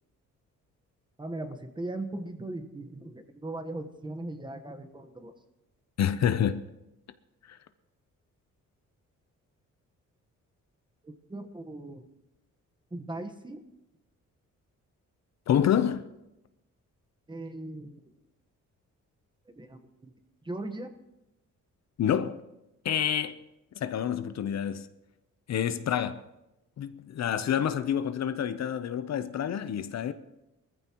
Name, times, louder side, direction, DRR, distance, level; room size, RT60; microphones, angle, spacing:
voice 1, 1.2-5.3 11.0-12.1 12.9-13.6 17.3-18.0 19.6-20.1 20.4-21.0, right 2 dB, 15° right, 1.2 m, -39 dB
voice 2, 6.0-6.6 7.5-7.6 15.5-16.1 22.0-22.4 22.8-23.4 23.8-24.9 25.5-26.2 26.8-30.1, left 9 dB, 60° left, 0.7 m, -28 dB
21.0 x 14.5 x 3.0 m
cardioid pair, 110°, 30 cm